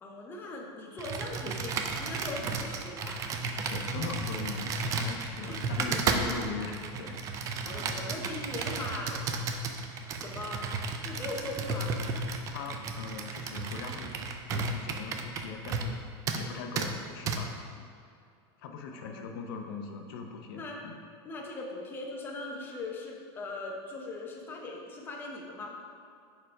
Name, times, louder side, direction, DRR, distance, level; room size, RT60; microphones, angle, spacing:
voice 1, 0.0-3.3 5.4-5.6 7.6-9.2 10.2-10.6 10.9-11.9 18.9-19.3 20.5-20.8 21.2-25.8, left 2 dB, 15° left, -1 dB, 0.6 m, -40 dB
Computer keyboard, 1.0-16.0 16.3-16.4 16.8-16.9 17.3-17.4, right 4 dB, 25° right, 0.3 m, -33 dB
voice 2, 3.7-7.2 12.5-14.1 14.4-16.0 16.3-17.8 18.6-20.9, left 5 dB, 60° left, 4 dB, 0.5 m, -40 dB
4.9 x 4.6 x 4.4 m, 2.3 s
supercardioid pair, 160°, 14 cm